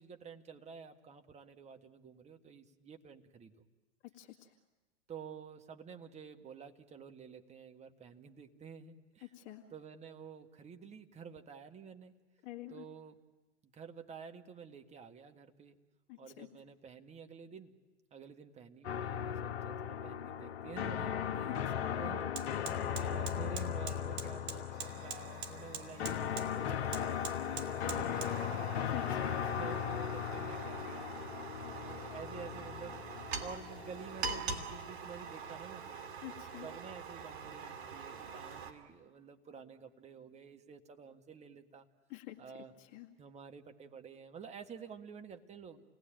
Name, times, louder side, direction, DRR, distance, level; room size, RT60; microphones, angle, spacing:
voice 1, 0.0-3.7 5.1-9.3 9.7-12.2 12.7-13.2 13.7-15.8 16.2-17.7 18.1-21.5 22.0-22.7 23.0-29.1 29.6-33.1 33.4-36.0 36.6-41.9 42.4-42.7 43.2-45.8, right 6 dB, 20° right, 6 dB, 1.6 m, -50 dB
voice 2, 4.0-4.5 9.2-9.6 12.4-12.9 16.1-16.5 21.5-21.9 28.8-29.7 36.2-36.7 42.1-42.4 42.8-43.1, left 16 dB, 35° left, 1 dB, 1.9 m, -47 dB
sound 1, 18.8-34.8, left 9 dB, 65° left, 1.4 m, -38 dB
Fire, 21.2-21.4 21.7-38.7, right 5 dB, 65° right, 2.9 m, -44 dB
29.0 x 19.5 x 9.0 m, 1.2 s
hypercardioid pair, 110°, 34 cm